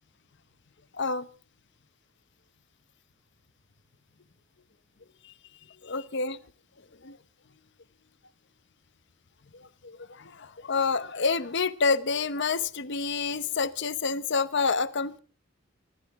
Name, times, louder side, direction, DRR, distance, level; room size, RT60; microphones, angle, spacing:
voice 1, 1.0-1.3 5.2-5.3 5.8-6.4 7.0-7.2 9.5-15.2, left 4 dB, 60° left, 1.0 m, -28 dB
26.0 x 13.5 x 3.6 m
head